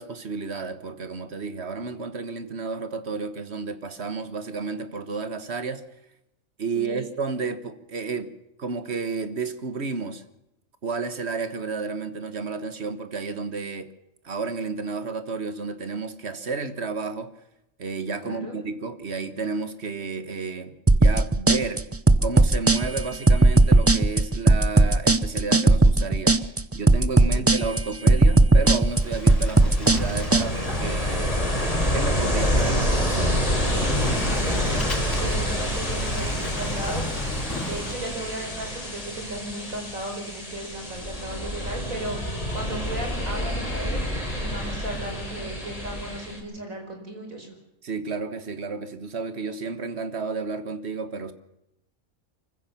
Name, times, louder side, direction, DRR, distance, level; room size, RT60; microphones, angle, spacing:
voice 1, 0.0-5.8 6.6-8.3 8.6-10.2 10.8-13.9 14.2-17.3 17.8-21.8 22.2-26.4 26.7-31.4 31.9-33.5 47.8-51.3, right 4 dB, 55° right, 11 dB, 1.6 m, -31 dB
voice 2, 18.2-18.6 27.3-27.6 33.9-37.0 37.6-44.0 44.3-47.6, right 1 dB, 80° right, 3 dB, 5.3 m, -36 dB
sound 1, 20.9-30.5, right 2 dB, 20° right, 0.4 m, -17 dB
Sliding door, 28.5-37.9, left 1 dB, 65° left, 3.9 m, -34 dB
Ocean, 29.0-46.4, equal, 25° left, 4.6 m, -28 dB
24.5 x 15.0 x 7.1 m, 0.86 s
omnidirectional pair, 1.4 m